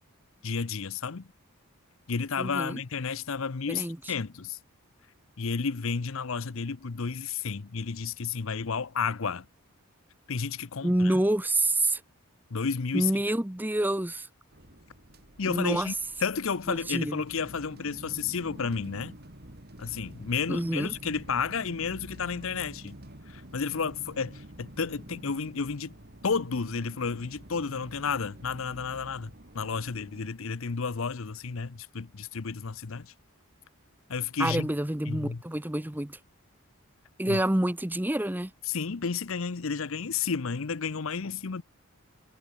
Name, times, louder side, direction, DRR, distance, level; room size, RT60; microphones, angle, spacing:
voice 1, 0.4-1.3 2.1-4.6 5.4-9.4 10.3-11.1 12.5-13.1 15.4-15.9 16.2-19.2 19.8-22.9 23.3-26.0 26.2-33.1 34.1-34.7 35.1-35.4 37.3-37.4 38.7-41.6, left 5 dB, 65° left, 0.7 m, -32 dB
voice 2, 2.4-2.8 3.7-4.1 10.8-12.0 12.9-14.3 15.4-15.9 16.7-17.2 20.5-20.9 34.4-36.2 37.2-38.5, right 1 dB, 10° right, 0.7 m, -27 dB
sound 1, 14.5-30.3, right 1 dB, 45° right, 4.3 m, -48 dB
head